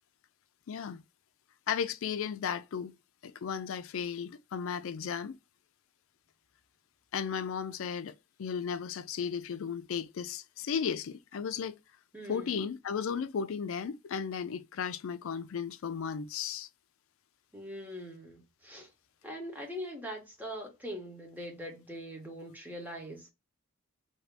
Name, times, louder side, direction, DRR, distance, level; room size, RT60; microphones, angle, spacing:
voice 1, 0.7-1.0 1.7-2.9 3.2-5.4 7.1-11.7 12.3-16.7, left 7 dB, 65° left, 0.4 m, -35 dB
voice 2, 12.1-12.5 17.5-18.9 19.2-23.3, equal, 10° right, 1.1 m, -42 dB
2.8 x 2.7 x 3.3 m
head